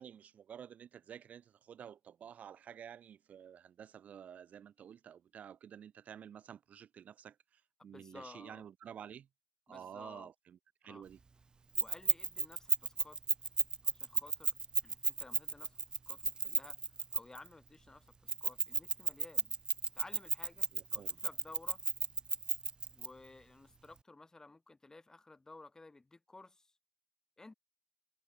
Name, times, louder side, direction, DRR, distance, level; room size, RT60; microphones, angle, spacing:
voice 1, 0.0-9.3 9.7-11.2 20.7-21.2, right 8 dB, 60° right, 6.3 m, -51 dB
voice 2, 7.9-8.6 9.7-10.3 10.8-11.0 11.8-13.2 13.8-14.5 14.8-16.8 17.1-19.5 19.9-21.8 22.9-26.7 27.4-27.5, left 2 dB, 20° left, 6.7 m, -55 dB
Keys jangling, 11.8-17.5 18.3-23.1, right 4 dB, 30° right, 0.5 m, -33 dB
supercardioid pair, 70°, 3 cm